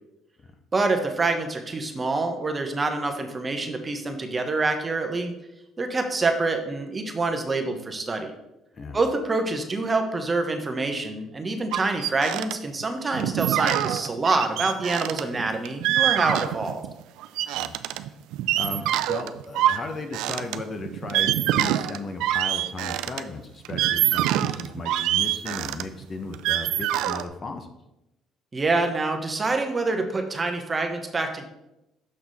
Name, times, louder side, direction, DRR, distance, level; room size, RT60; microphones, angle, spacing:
voice 1, 0.7-5.3 5.8-8.3 8.9-16.8 28.5-31.5, right 3 dB, 25° right, 5 dB, 1.0 m, -26 dB
sound 1, 11.7-12.5 12.8-12.9 13.1-16.9 17.2-23.2 23.6-27.3, right 13 dB, 80° right, 0.4 m, -25 dB
voice 2, 18.5-27.7, left 3 dB, 35° left, 7 dB, 0.8 m, -36 dB
6.4 x 5.8 x 4.1 m, 0.90 s
cardioid pair, 100°, 0 cm